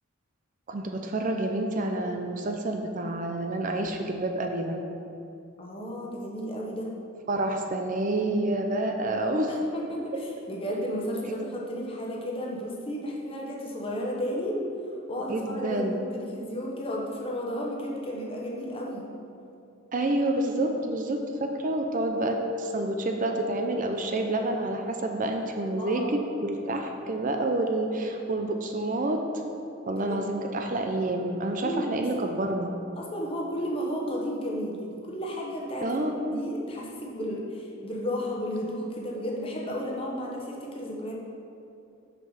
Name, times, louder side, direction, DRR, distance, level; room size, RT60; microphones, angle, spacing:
voice 1, 0.7-4.8 7.3-9.5 15.3-16.0 19.9-29.2 29.9-32.7 35.8-36.2, right 1 dB, 40° right, 4 dB, 0.5 m, -28 dB
voice 2, 5.6-6.9 9.5-14.6 15.1-19.1 25.8-26.2 30.0-30.2 31.6-32.0 32.9-41.1, equal, 25° left, -2 dB, 1.1 m, -33 dB
6.1 x 5.6 x 5.6 m, 2.6 s
head